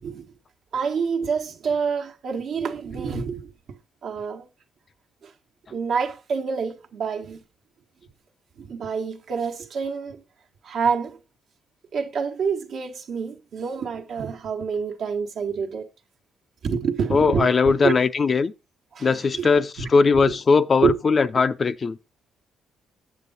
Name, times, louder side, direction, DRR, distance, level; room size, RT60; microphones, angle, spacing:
voice 1, 0.7-3.5 4.0-4.5 5.2-5.3 5.7-7.4 8.6-10.2 10.6-11.2 11.9-15.9 16.6-17.9 18.9-19.5 19.8-19.9 20.2-20.3 20.8-21.0, right 6 dB, 65° right, 1.2 m, -27 dB
voice 2, 17.1-18.5 19.0-22.0, left 4 dB, 40° left, 0.5 m, -19 dB
8.3 x 7.1 x 3.9 m
cardioid pair, 90°, 0 cm